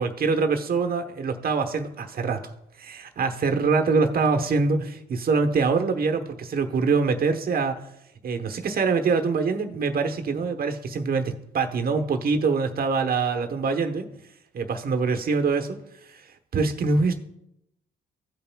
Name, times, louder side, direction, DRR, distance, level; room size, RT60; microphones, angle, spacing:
voice 1, 0.0-2.4 2.8-7.7 8.2-14.1 14.5-15.8 16.1-16.2 16.5-17.1, right 4 dB, 50° right, 6 dB, 1.0 m, -24 dB
16.5 x 5.7 x 2.2 m, 0.85 s
cardioid pair, 90°, 20 cm